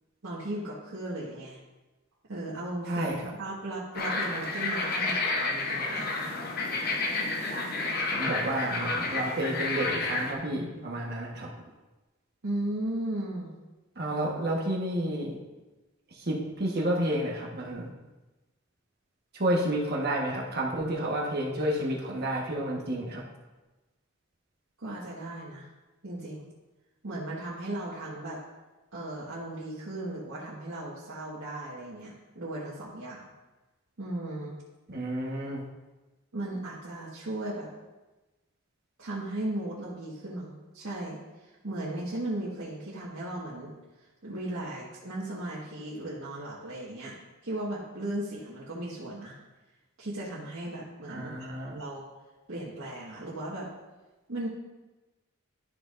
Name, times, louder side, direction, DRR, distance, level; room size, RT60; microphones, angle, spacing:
voice 1, 0.2-1.6 2.3-3.1 3.4-6.1 12.4-13.5 24.8-25.7 26.0-26.4 27.0-28.4 28.9-33.3 34.0-34.6 36.3-37.7 39.0-41.2 41.6-43.7 44.2-47.1 47.4-49.4 50.0-52.0 52.5-53.7 54.3-54.5, right 1 dB, 85° right, -9 dB, 1.7 m, -36 dB
voice 2, 2.8-3.3 8.1-11.5 14.0-15.4 16.1-17.9 19.3-23.2 34.9-35.6 51.1-51.8, right 1 dB, 50° right, -2 dB, 1.3 m, -30 dB
sound 1, 3.9-10.3, left 3 dB, 45° left, 1.0 m, -30 dB
12.5 x 6.1 x 2.6 m, 1.1 s
head